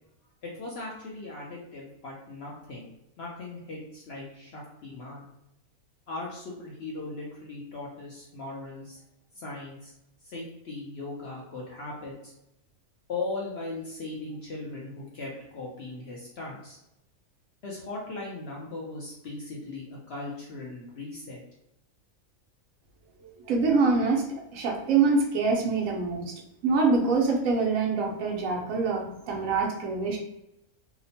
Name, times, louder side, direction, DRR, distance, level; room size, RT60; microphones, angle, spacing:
voice 1, 0.4-2.9 3.2-5.3 6.1-9.0 9.3-9.9 10.2-12.3 13.1-16.8 17.6-21.4, left 2 dB, 65° left, -3 dB, 0.7 m, -38 dB
voice 2, 23.5-26.3 26.6-30.2, right 4 dB, 75° right, 0 dB, 1.0 m, -25 dB
2.8 x 2.0 x 2.7 m, 0.85 s
omnidirectional pair, 1.5 m